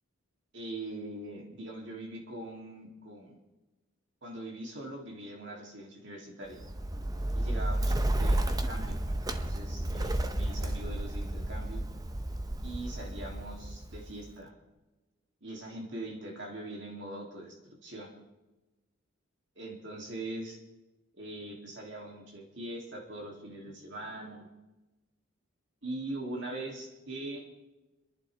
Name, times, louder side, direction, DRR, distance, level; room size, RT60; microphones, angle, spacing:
voice 1, 0.5-3.4 4.2-6.6 7.3-9.0 9.4-11.8 12.6-14.5 15.4-18.1 19.6-20.6 21.1-24.5 25.8-27.6, right 1 dB, 60° right, 0 dB, 2.5 m, -42 dB
Bird, 6.5-14.3, right 1 dB, 15° right, 0.6 m, -32 dB
29.0 x 11.0 x 3.3 m, 1.1 s
head